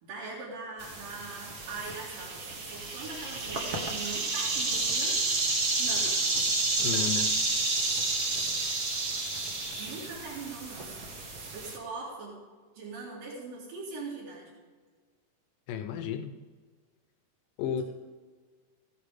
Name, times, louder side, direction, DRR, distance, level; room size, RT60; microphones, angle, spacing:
voice 1, 0.0-5.2 5.8-6.2 9.8-11.0 11.5-12.4 12.7-14.5, right 3 dB, 75° right, -6 dB, 3.9 m, -41 dB
sound 1, 0.8-11.8, right 3 dB, 60° right, 1.0 m, -30 dB
voice 2, 6.8-7.3 8.1-8.3 15.7-16.4 17.6-17.8, left 8 dB, 75° left, 8 dB, 2.2 m, -33 dB
15.5 x 8.4 x 4.9 m, 1.5 s
omnidirectional pair, 4.0 m